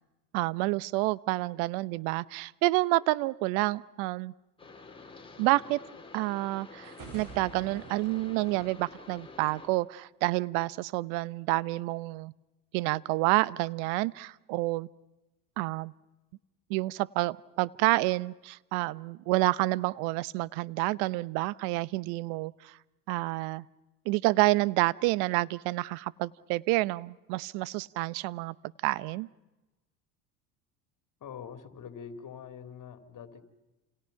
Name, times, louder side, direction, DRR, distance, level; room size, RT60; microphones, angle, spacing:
voice 1, 0.3-4.3 5.4-5.8 6.1-12.3 12.7-14.9 15.6-15.9 16.7-22.7 23.1-23.6 24.0-28.5 28.8-29.3, right 20 dB, 65° right, 20 dB, 0.9 m, -29 dB
sound 1, 4.6-9.7, left 3 dB, 10° left, 4.9 m, -49 dB
sound 2, 6.8-9.7, right 4 dB, 45° right, 6.7 m, -49 dB
voice 2, 31.2-33.4, left 7 dB, 45° left, 7 dB, 3.8 m, -44 dB
30.0 x 28.0 x 5.8 m, 1.1 s
hypercardioid pair, 75°, 44 cm